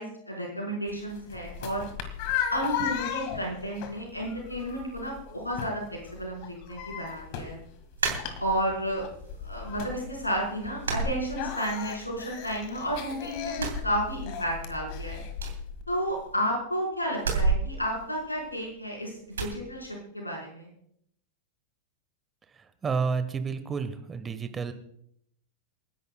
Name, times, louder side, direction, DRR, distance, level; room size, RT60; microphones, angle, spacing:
voice 1, 0.0-1.8 2.5-7.6 8.4-9.0 9.4-15.2 15.9-19.1 19.4-20.7, equal, 85° left, -2 dB, 4.7 m, -32 dB
sound 1, 0.9-15.8, left 8 dB, 45° left, 1.7 m, -37 dB
sound 2, 8.0-8.9 9.3-10.0 10.2-10.4 10.8-11.9 12.2-13.1 13.5-14.6 14.9-15.0 15.3-16.5 17.2-18.8 19.3-19.6, right 4 dB, 70° right, 3.0 m, -32 dB
voice 2, 22.8-24.7, right 5 dB, 20° right, 10 dB, 1.2 m, -30 dB
28.5 x 11.0 x 2.3 m, 0.70 s
figure-of-eight pair, 90°, 0 cm